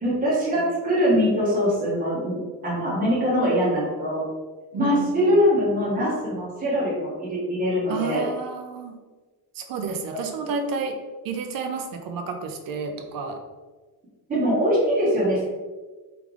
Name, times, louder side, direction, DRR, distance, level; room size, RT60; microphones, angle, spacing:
voice 1, 0.0-4.2 4.7-8.2 14.3-15.4, equal, 20° right, -7 dB, 1.4 m, -22 dB
voice 2, 4.7-5.4 7.9-9.0 9.5-11.0 11.2-13.4, right 5 dB, 60° right, 4 dB, 0.6 m, -31 dB
3.5 x 3.4 x 3.6 m, 1.3 s
cardioid pair, 160°, 39 cm